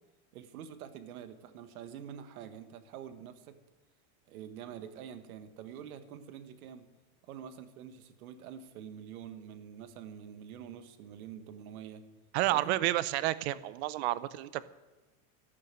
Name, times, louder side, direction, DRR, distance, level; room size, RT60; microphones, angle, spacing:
voice 1, 0.3-3.6 4.3-6.9 7.3-12.0 12.5-12.8, right 9 dB, 85° right, 9 dB, 1.7 m, -46 dB
voice 2, 12.3-14.7, right 16 dB, 50° right, 17 dB, 0.7 m, -30 dB
12.5 x 12.0 x 7.6 m, 1.2 s
supercardioid pair, 175°, 42 cm